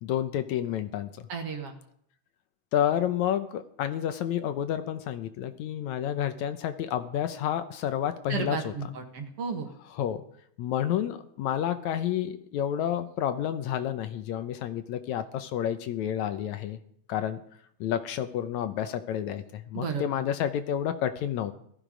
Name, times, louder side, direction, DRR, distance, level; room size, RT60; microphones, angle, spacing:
voice 1, 0.0-1.3 2.7-8.9 9.9-10.2 10.6-16.8 17.1-17.4 17.8-21.5, left 10 dB, 75° left, 10 dB, 2.1 m, -30 dB
voice 2, 1.3-1.7 8.3-9.7 19.7-20.0, right 5 dB, 55° right, 4 dB, 2.4 m, -33 dB
17.0 x 14.0 x 5.1 m, 0.68 s
omnidirectional pair, 3.5 m